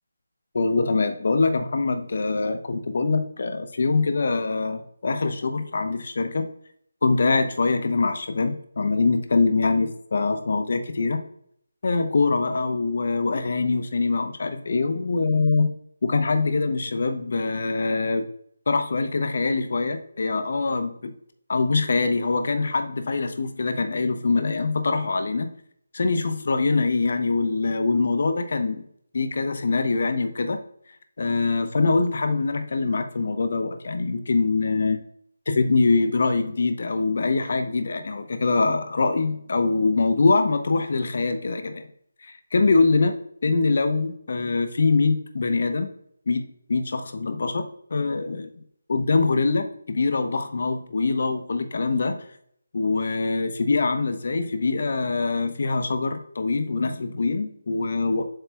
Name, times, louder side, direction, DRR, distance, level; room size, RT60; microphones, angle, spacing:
voice 1, 0.5-6.5 7.0-11.2 11.8-15.7 16.0-18.3 18.7-21.1 21.5-25.5 25.9-28.8 29.1-30.6 31.2-35.0 35.5-41.9 42.2-45.9 46.3-48.5 48.9-52.2 52.7-58.2, left 3 dB, 55° left, 8 dB, 0.8 m, -23 dB
7.7 x 6.6 x 2.3 m, 0.68 s
figure-of-eight pair, 155°, 0 cm